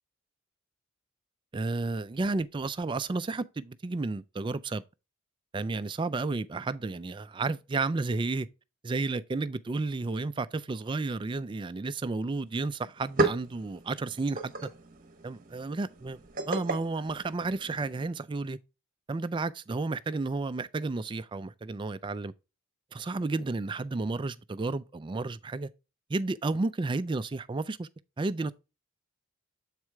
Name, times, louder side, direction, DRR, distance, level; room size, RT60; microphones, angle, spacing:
voice 1, 1.5-4.8 5.5-8.5 8.8-14.7 15.2-16.2 16.5-18.6 19.1-22.3 22.9-25.7 26.1-27.9 28.2-28.5, right 3 dB, 20° right, 0.3 m, -32 dB
sound 1, 12.5-12.6 12.8-18.0, right 2 dB, 40° right, 1.0 m, -34 dB
7.4 x 4.7 x 3.4 m
head